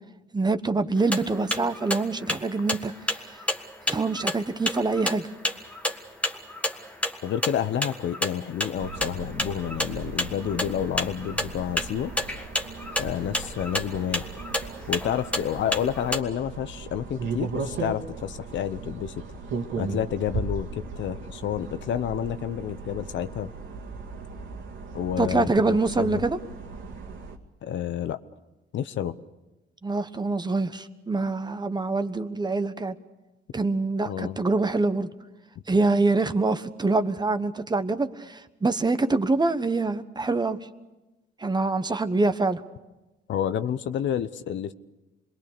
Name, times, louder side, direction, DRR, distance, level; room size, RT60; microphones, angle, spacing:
voice 1, 0.3-2.9 3.9-5.3 25.2-26.4 29.8-32.9 33.5-35.1 35.7-40.6 41.4-42.6, right 3 dB, 20° right, 10 dB, 1.2 m, -25 dB
sound 1, 1.0-16.2, left 1 dB, 5° left, 1.6 m, -30 dB
voice 2, 7.2-12.1 13.0-14.3 14.9-19.2 19.8-23.5 24.9-26.2 27.6-28.2 28.7-29.2 34.0-34.4 43.3-44.7, left 9 dB, 70° left, 12 dB, 0.9 m, -29 dB
sound 2, 8.8-27.4, right 4 dB, 75° right, 2.3 m, -37 dB
26.5 x 21.0 x 6.9 m, 1.1 s
cardioid pair, 90°, 20 cm